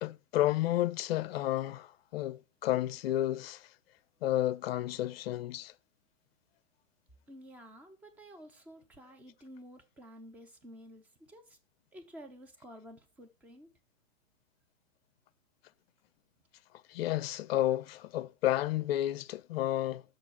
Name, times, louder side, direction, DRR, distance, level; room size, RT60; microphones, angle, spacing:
voice 1, 0.0-3.7 4.2-5.7 16.9-20.0, left 14 dB, 50° left, 0.5 m, -31 dB
voice 2, 7.3-11.4 11.9-13.7, equal, 5° right, 0.4 m, -51 dB
6.4 x 4.5 x 5.8 m
figure-of-eight pair, 110°, 39 cm